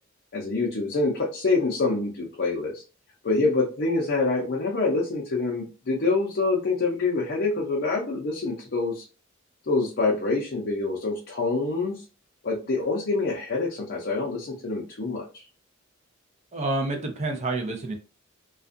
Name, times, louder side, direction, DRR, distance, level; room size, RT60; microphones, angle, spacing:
voice 1, 0.3-2.8 3.2-9.0 9.7-12.0 12.4-15.4, left 3 dB, 55° left, -3 dB, 0.5 m, -26 dB
voice 2, 16.5-17.9, right 2 dB, 35° right, 3 dB, 0.6 m, -28 dB
2.4 x 2.3 x 2.5 m, 0.34 s
head